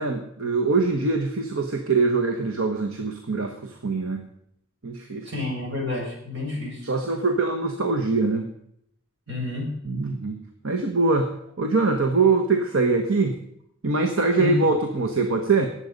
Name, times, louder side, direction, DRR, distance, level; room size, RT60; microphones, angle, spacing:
voice 1, 0.0-3.5 3.8-4.2 4.8-5.3 6.8-8.4 9.8-10.4 10.6-11.3 11.6-13.3 13.8-15.7, right 3 dB, 75° right, 5 dB, 1.2 m, -23 dB
voice 2, 5.3-6.8 9.3-9.7 14.4-14.7, left 2 dB, 60° right, -2 dB, 5.8 m, -29 dB
19.0 x 8.1 x 5.3 m, 0.75 s
head